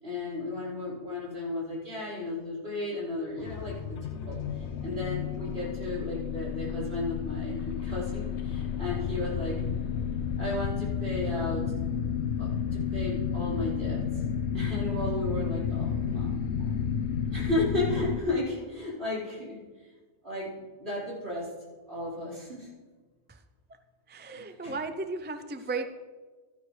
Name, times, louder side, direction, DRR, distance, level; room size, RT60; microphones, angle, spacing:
voice 1, 0.0-4.4 4.8-9.5 10.4-11.6 12.4-14.0 14.5-16.7 17.3-19.6 20.2-21.5 21.9-22.7 24.4-24.7, left 2 dB, 65° right, -8 dB, 4.8 m, -34 dB
sound 1, 3.4-18.2, left 7 dB, 75° left, 1.1 m, -31 dB
voice 2, 24.1-25.8, right 3 dB, 15° right, 8 dB, 0.3 m, -35 dB
16.5 x 12.5 x 3.3 m, 1.4 s
omnidirectional pair, 1.2 m